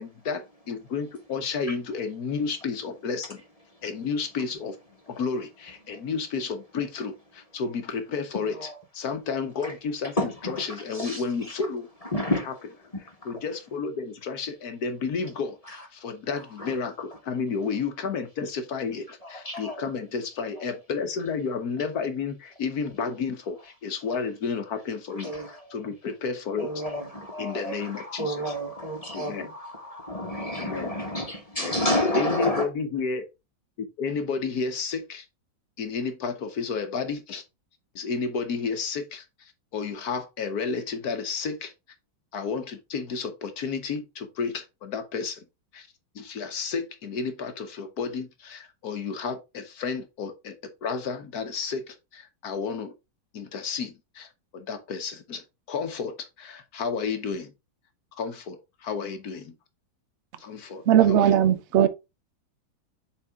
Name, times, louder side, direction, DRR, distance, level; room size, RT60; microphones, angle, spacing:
voice 1, 0.0-3.4 3.8-4.8 5.1-11.9 13.2-26.7 27.4-28.5 29.1-29.5 30.6-30.9 31.6-31.8 32.1-33.2 33.8-35.2 35.8-37.4 37.9-41.7 42.3-45.4 45.7-45.9 46.1-50.6 50.8-52.9 53.3-54.3 54.5-57.5 58.2-59.5 60.4-61.6, left 5 dB, 60° left, 1.3 m, -32 dB
voice 2, 8.3-8.8 9.6-9.7 10.2-10.6 10.9-11.5 12.1-12.5 16.6-16.8 19.2-19.9 20.4-20.6 25.2-25.8 26.6-32.7, left 1 dB, 20° left, 1.2 m, -30 dB
voice 3, 60.9-61.9, right 10 dB, 75° right, 0.6 m, -18 dB
7.3 x 4.1 x 3.5 m
omnidirectional pair, 2.1 m